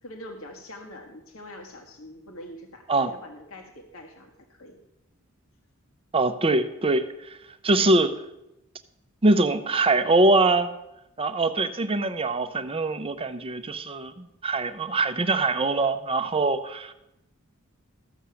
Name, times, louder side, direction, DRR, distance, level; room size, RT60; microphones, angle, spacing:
voice 1, 0.0-4.8, left 1 dB, 70° left, 3 dB, 1.6 m, -44 dB
voice 2, 6.1-7.4 7.6-8.1 9.2-10.7 11.2-16.9, right 2 dB, 25° right, 10 dB, 0.6 m, -23 dB
14.0 x 6.4 x 6.9 m, 0.88 s
head